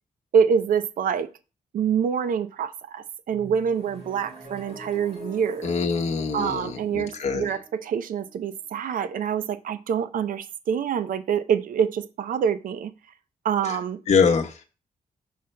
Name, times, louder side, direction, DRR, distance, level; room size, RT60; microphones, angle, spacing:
voice 1, 0.3-1.3 1.7-5.7 6.3-12.9 13.4-14.0, right 7 dB, 75° right, 13 dB, 0.6 m, -26 dB
sound 1, 3.3-9.1, right 1 dB, 45° right, 3.6 m, -44 dB
voice 2, 5.6-7.5 14.1-14.5, left 5 dB, 55° left, 1 dB, 1.1 m, -23 dB
5.7 x 5.6 x 3.2 m, 0.32 s
cardioid pair, 115°, 14 cm